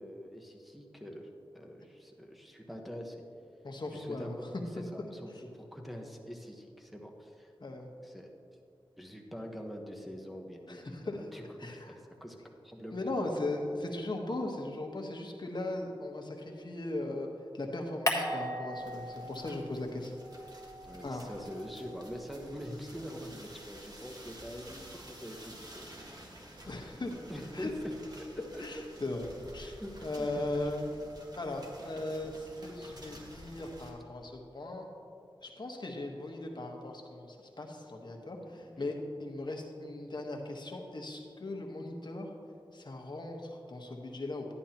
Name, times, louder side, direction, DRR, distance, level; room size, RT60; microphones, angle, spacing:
voice 1, 0.0-3.2 3.9-7.5 8.0-8.3 9.0-13.3 20.8-26.2 26.9-27.7 28.2-28.6 29.6-29.9 30.2-30.7 38.5-38.9, equal, ahead, 2 dB, 1.2 m, -45 dB
voice 2, 3.6-4.4 4.8-4.9 7.6-7.9 10.7-11.2 11.6-11.9 12.9-17.3 17.5-20.1 21.0-21.2 26.7-27.1 27.5-27.7 28.6-29.8 30.0-30.9 31.4-34.9 35.4-42.3 42.7-44.5, left 2 dB, 50° left, 1 dB, 1.3 m, -38 dB
sound 1, 18.1-19.7 20.0-22.5, left 1 dB, 35° left, 1.5 m, -38 dB
sound 2, 18.7-33.9, right 1 dB, 45° right, 1.7 m, -51 dB
11.5 x 10.5 x 2.9 m, 2.5 s
wide cardioid pair, 55°, 9 cm